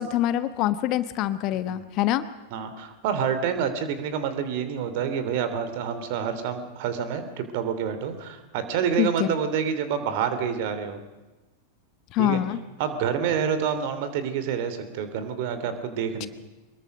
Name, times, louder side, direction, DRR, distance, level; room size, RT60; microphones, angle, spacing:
voice 1, 0.0-2.2 9.0-9.4 12.1-12.6 16.2-16.3, left 12 dB, 40° left, 13 dB, 1.2 m, -25 dB
voice 2, 2.5-11.0 12.2-12.4 12.8-16.3, right 7 dB, 50° right, 10 dB, 3.1 m, -28 dB
24.0 x 21.5 x 6.6 m, 1.2 s
figure-of-eight pair, 90°, 0 cm